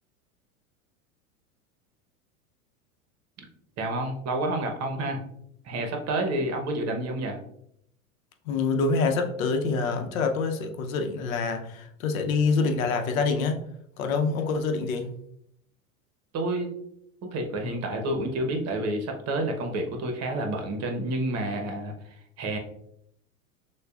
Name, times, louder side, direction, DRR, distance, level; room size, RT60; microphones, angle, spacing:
voice 1, 3.8-5.2 5.6-7.4 16.3-16.8 17.2-21.9 22.4-22.6, right 1 dB, 35° right, 4 dB, 1.0 m, -29 dB
voice 2, 8.5-13.6 14.0-15.1, left 4 dB, 70° left, 6 dB, 0.8 m, -26 dB
6.5 x 2.3 x 2.4 m, 0.72 s
hypercardioid pair, 90°, 42 cm